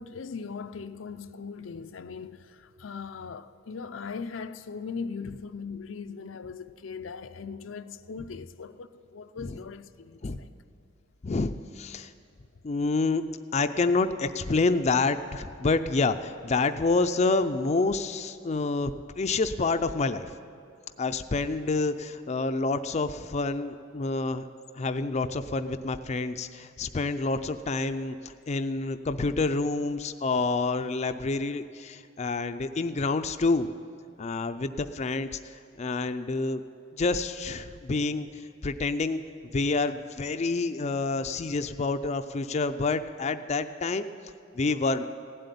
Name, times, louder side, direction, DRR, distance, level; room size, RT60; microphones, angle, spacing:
voice 1, 0.0-10.5, left 5 dB, 85° left, 0.5 m, -39 dB
voice 2, 11.2-12.1 12.6-13.2 13.5-20.3 21.0-24.4 24.8-33.7 34.2-35.3 35.8-36.6 37.0-38.3 38.6-39.2 39.5-44.1 44.5-45.0, left 3 dB, 35° left, 0.4 m, -28 dB
16.0 x 7.8 x 9.8 m
head